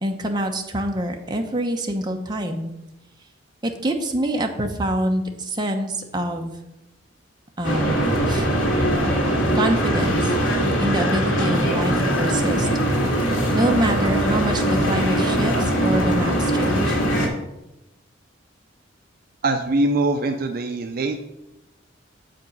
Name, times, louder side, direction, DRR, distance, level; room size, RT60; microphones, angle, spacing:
voice 1, 0.0-2.7 3.6-6.6 7.6-8.0 8.3-8.5 9.5-10.4 10.8-12.7 13.5-17.0, right 1 dB, 20° right, 3 dB, 0.8 m, -25 dB
sound 1, 7.6-17.3, right 1 dB, 90° left, 1.9 m, -21 dB
voice 2, 19.4-21.2, right 2 dB, 50° right, 6 dB, 0.5 m, -22 dB
7.5 x 5.2 x 5.3 m, 0.92 s
head